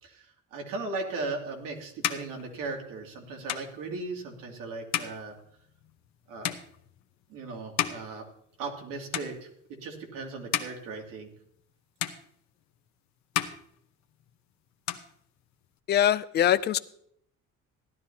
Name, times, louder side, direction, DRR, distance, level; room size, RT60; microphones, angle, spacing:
voice 1, 0.0-5.3 6.3-6.5 7.3-8.2 8.6-11.3, right 3 dB, 85° right, 2.7 m, -37 dB
sound 1, 1.2-8.8 9.1-9.8 10.2-11.7 12.0-12.9 13.2-14.4 14.7-15.8, left 11 dB, 60° left, 0.9 m, -36 dB
voice 2, 15.9-16.8, left 11 dB, 35° left, 0.4 m, -23 dB
17.0 x 12.0 x 2.8 m
cardioid pair, 170°, 32 cm